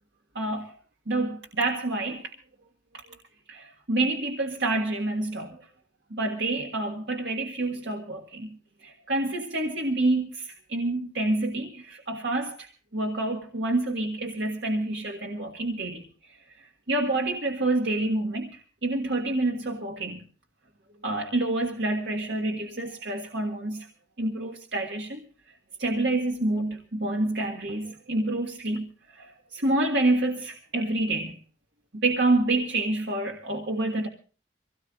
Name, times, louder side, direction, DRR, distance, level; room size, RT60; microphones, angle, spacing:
voice 1, 0.3-0.8 1.1-2.3 3.5-5.6 6.1-8.5 8.8-12.7 12.9-16.4 16.9-20.2 21.0-23.9 24.2-25.2 25.8-31.4 31.9-34.1, right 2 dB, 80° right, 1.6 m, -28 dB
25.0 x 17.5 x 2.5 m
head